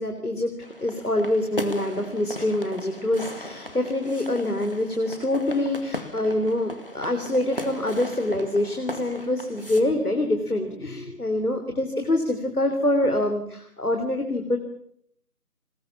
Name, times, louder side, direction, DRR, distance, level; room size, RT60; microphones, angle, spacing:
voice 1, 0.0-14.6, left 1 dB, 70° left, 5 dB, 3.6 m, -25 dB
sound 1, 0.6-9.8, left 1 dB, 35° left, 2.2 m, -38 dB
25.5 x 21.0 x 7.3 m, 0.68 s
figure-of-eight pair, 175°, 47 cm